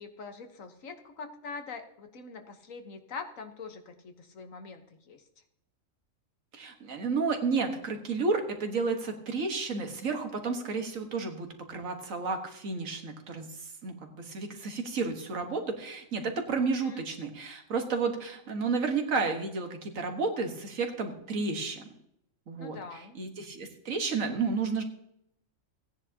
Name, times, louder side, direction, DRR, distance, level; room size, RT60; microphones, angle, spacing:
voice 1, 0.0-5.2 16.8-17.1 22.6-23.2, left 4 dB, 80° left, 6 dB, 1.6 m, -43 dB
voice 2, 6.5-21.8 22.5-24.8, right 4 dB, 85° right, 4 dB, 1.8 m, -32 dB
16.5 x 9.8 x 2.9 m, 0.76 s
omnidirectional pair, 1.4 m